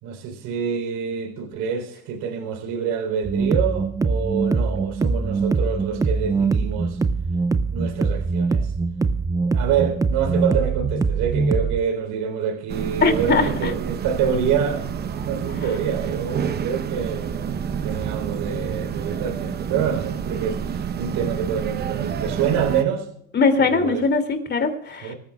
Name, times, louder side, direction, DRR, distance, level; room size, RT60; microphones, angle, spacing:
voice 1, 0.0-7.0 7.7-8.7 9.4-14.9 15.2-23.1 23.6-24.0 25.0-25.2, right 7 dB, 55° right, 3.8 m, -26 dB
sound 1, 3.2-11.8, right 4 dB, 10° right, 0.4 m, -23 dB
sound 2, 12.7-22.8, right 7 dB, 25° right, 0.8 m, -28 dB
voice 2, 13.0-13.7 23.3-25.1, left 4 dB, 25° left, 2.6 m, -21 dB
24.5 x 14.0 x 2.4 m
supercardioid pair, 105°, 40 cm